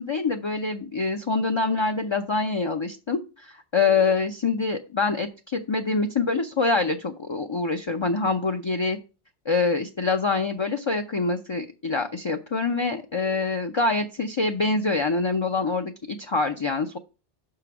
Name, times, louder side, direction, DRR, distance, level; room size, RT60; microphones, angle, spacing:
voice 1, 0.0-9.0 9.5-17.0, left 3 dB, 35° left, 5 dB, 0.4 m, -25 dB
6.0 x 4.8 x 5.9 m, 0.32 s
omnidirectional pair, 1.2 m